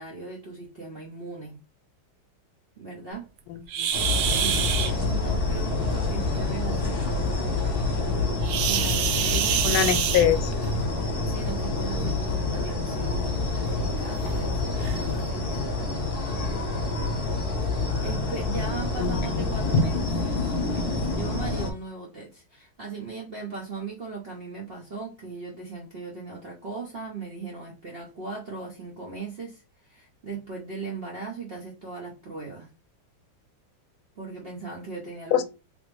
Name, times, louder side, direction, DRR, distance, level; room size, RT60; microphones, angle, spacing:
voice 1, 0.0-1.5 2.8-3.3 4.4-7.8 8.6-9.8 11.3-15.7 17.6-32.7 34.2-35.4, right 4 dB, 60° right, 0.6 m, -38 dB
voice 2, 3.5-3.9 9.6-10.5 19.0-19.5 35.3-35.4, left 10 dB, 85° left, 1.4 m, -24 dB
sound 1, 3.7-4.9 8.4-10.7 11.9-12.1 12.7-12.8 13.3-13.4 14.2-14.3 14.8-15.0, right 9 dB, 80° right, 1.3 m, -26 dB
sound 2, 3.9-21.7, left 3 dB, 35° left, 1.0 m, -27 dB
3.5 x 3.0 x 3.2 m
omnidirectional pair, 2.2 m